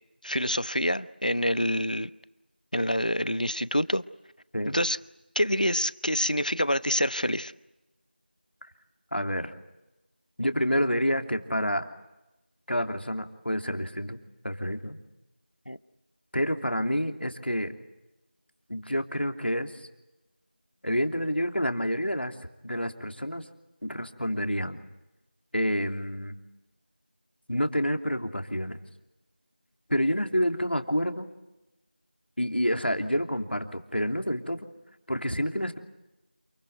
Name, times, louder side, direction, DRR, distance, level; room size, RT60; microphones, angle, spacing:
voice 1, 0.2-2.1 2.7-4.0 4.7-5.0 5.3-7.5 15.7-15.8, equal, 50° left, 17 dB, 0.9 m, -26 dB
voice 2, 9.1-9.5 10.4-11.8 12.7-14.2 14.4-15.0 16.3-17.7 18.7-19.9 20.8-22.3 22.6-23.5 23.8-24.8 25.5-26.3 27.5-28.8 29.9-31.3 32.4-34.6 35.1-35.8, equal, 75° left, 5 dB, 3.0 m, -28 dB
28.5 x 22.0 x 8.1 m, 0.98 s
figure-of-eight pair, 180°, 6 cm